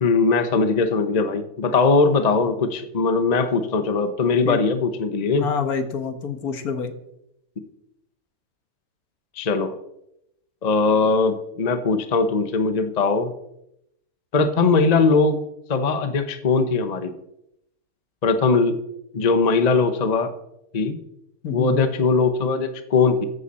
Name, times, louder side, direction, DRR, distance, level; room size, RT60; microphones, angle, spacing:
voice 1, 0.0-5.5 9.4-9.8 10.6-13.3 14.3-15.4 15.7-17.1 18.2-18.8 19.1-20.3 20.7-21.0 21.5-23.2, left 4 dB, 30° left, 9 dB, 0.9 m, -20 dB
voice 2, 5.4-6.9 21.4-21.9, left 6 dB, 65° left, 9 dB, 1.7 m, -27 dB
14.5 x 10.5 x 4.2 m, 0.80 s
omnidirectional pair, 1.8 m